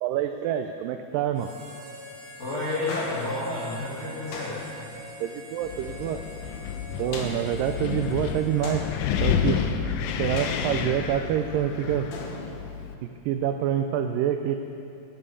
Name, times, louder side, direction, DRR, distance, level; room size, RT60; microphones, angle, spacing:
voice 1, 0.0-1.5 5.2-6.2 7.0-8.8 9.2-9.7 10.2-12.1 13.0-14.6, right 10 dB, 85° right, 7 dB, 2.0 m, -27 dB
Harmonica, 1.3-9.4, equal, 40° right, 3.9 m, -45 dB
voice 2, 2.4-4.6, left 2 dB, 35° left, -8 dB, 1.0 m, -30 dB
sound 1, 2.9-3.7 4.3-5.1 7.1-7.9 8.6-9.4 10.4-11.2 12.1-12.9, left 3 dB, 65° left, 2.7 m, -38 dB
Wind, 5.6-12.9, left 8 dB, 80° left, 2.0 m, -30 dB
13.5 x 9.8 x 5.4 m, 2.6 s
omnidirectional pair, 4.4 m